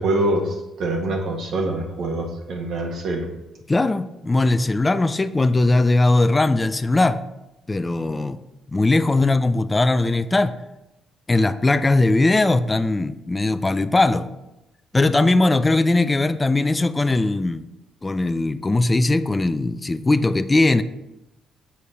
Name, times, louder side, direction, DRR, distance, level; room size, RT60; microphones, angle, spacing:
voice 1, 0.0-3.3, right 1 dB, 70° right, 1.5 m, -25 dB
voice 2, 3.7-7.2 7.7-8.4 8.7-10.5 11.3-14.3 14.9-17.7 18.0-20.8, left 2 dB, 20° left, 0.3 m, -19 dB
7.0 x 4.8 x 5.5 m
cardioid pair, 90°, 0 cm